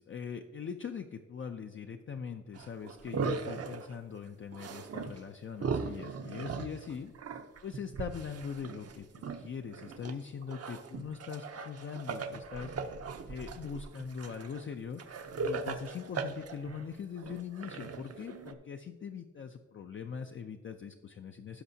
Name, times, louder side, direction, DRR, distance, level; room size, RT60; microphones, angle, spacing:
voice 1, 0.0-7.1 7.6-9.1 9.4-12.7 13.3-15.0 15.4-21.6, left 6 dB, 40° left, 5 dB, 0.4 m, -41 dB
sound 1, 2.5-3.9 4.5-5.2 5.5-10.1 10.4-18.5, right 4 dB, 55° right, 0.7 m, -39 dB
16.0 x 6.0 x 2.7 m, 1.3 s
wide cardioid pair, 160°, 31 cm